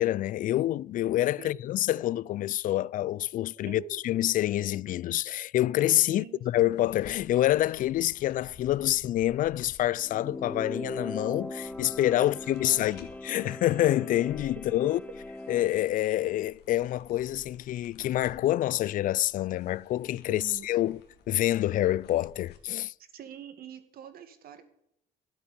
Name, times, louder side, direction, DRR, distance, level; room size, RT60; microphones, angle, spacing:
voice 1, 0.0-15.0 15.5-21.0 21.3-22.9, left 14 dB, 55° left, 0.4 m, -27 dB
voice 2, 3.7-4.0 6.1-6.4 12.8-13.0 14.8-14.9 20.3-20.7 23.0-24.6, right 8 dB, 60° right, 2.1 m, -45 dB
sound 1, 6.7-22.6, left 7 dB, 80° left, 2.4 m, -54 dB
sound 2, 10.0-15.7, left 1 dB, 10° left, 0.7 m, -40 dB
12.5 x 8.6 x 7.0 m
cardioid pair, 110°, 17 cm